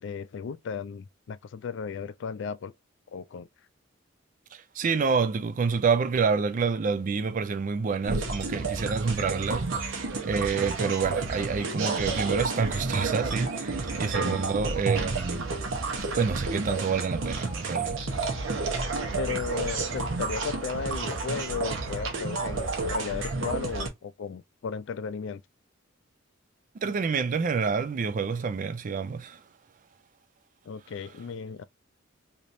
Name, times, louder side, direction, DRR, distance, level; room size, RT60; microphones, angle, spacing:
voice 1, 0.0-2.7 3.1-3.5 14.2-14.4 19.1-25.4 30.7-31.6, left 6 dB, 60° left, 0.3 m, -35 dB
voice 2, 4.5-15.5 16.0-18.0 26.8-29.4, right 5 dB, 40° right, 0.3 m, -28 dB
sound 1, 8.0-23.9, right 3 dB, 65° right, 0.9 m, -31 dB
3.3 x 2.9 x 2.6 m
head